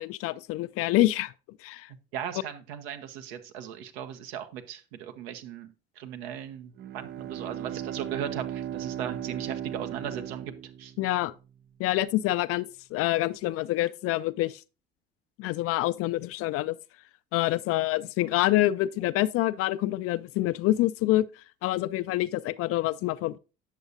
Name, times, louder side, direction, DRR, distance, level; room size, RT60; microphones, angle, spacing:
voice 1, 0.0-1.3 1.6-1.9 11.0-11.3 11.8-14.6 15.4-16.8 17.3-23.4, left 16 dB, 50° left, 0.4 m, -26 dB
voice 2, 2.1-10.9, right 9 dB, 70° right, 0.9 m, -38 dB
Bowed string instrument, 6.8-11.3, right 10 dB, 35° right, 0.4 m, -37 dB
8.1 x 7.0 x 2.6 m
figure-of-eight pair, 55°, 31 cm